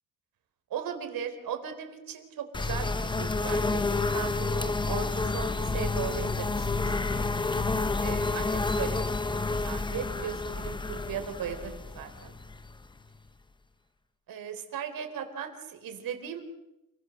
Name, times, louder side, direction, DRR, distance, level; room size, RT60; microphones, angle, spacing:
voice 1, 0.7-6.7 7.0-7.3 8.0-9.1 9.6-12.3 14.3-16.4, right 8 dB, 85° right, 7 dB, 4.0 m, -37 dB
sound 1, 2.5-13.2, left 3 dB, 15° left, 0.8 m, -29 dB
29.5 x 22.0 x 6.5 m, 0.94 s
wide cardioid pair, 175°, 33 cm